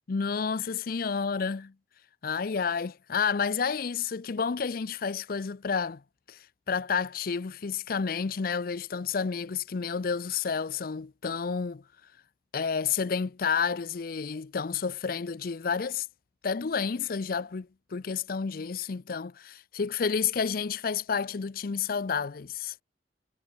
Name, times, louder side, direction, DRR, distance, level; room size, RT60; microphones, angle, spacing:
voice 1, 0.1-1.7 2.2-6.0 6.3-6.4 6.7-11.8 12.5-16.1 16.4-22.7, left 6 dB, 55° left, 0.5 m, -30 dB
head